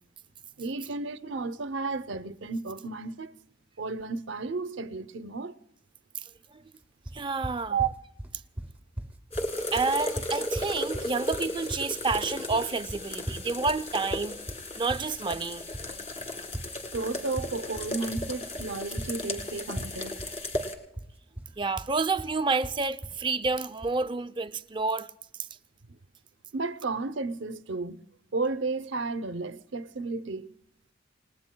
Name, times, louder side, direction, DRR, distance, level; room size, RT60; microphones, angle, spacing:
voice 1, 0.6-3.3 3.8-5.6 7.7-7.9 16.9-20.2 25.9-26.0 26.5-28.0 28.3-30.5, right 4 dB, 65° right, 0.7 m, -33 dB
voice 2, 6.1-6.6 7.1-7.8 9.7-14.4 14.8-16.0 21.6-25.1 25.4-25.5, right 4 dB, 25° right, 0.5 m, -29 dB
sound 1, 7.1-24.0, right 1 dB, 10° right, 0.9 m, -40 dB
sound 2, 9.3-20.7, left 1 dB, 30° left, 2.1 m, -35 dB
29.5 x 19.5 x 2.2 m
head